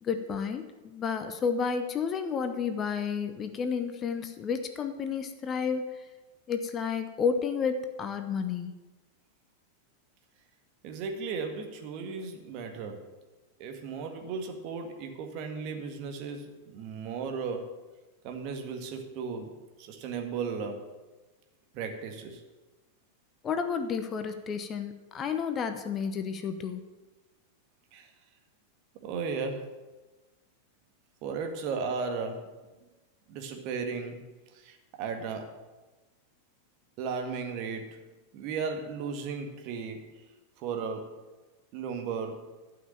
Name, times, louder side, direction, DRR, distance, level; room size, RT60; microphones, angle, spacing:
voice 1, 0.0-6.0 6.5-8.7 23.4-26.8, left 6 dB, 25° left, 8 dB, 1.0 m, -31 dB
voice 2, 10.8-13.1 13.6-17.8 18.2-19.5 19.8-20.9 21.7-22.4 27.9-28.1 29.0-29.8 31.2-32.5 33.3-34.2 34.5-35.6 37.0-38.0 38.3-40.2 40.6-41.2 41.7-42.5, right 5 dB, 40° right, 4 dB, 1.8 m, -35 dB
12.0 x 5.9 x 9.0 m, 1.2 s
figure-of-eight pair, 90°, 0 cm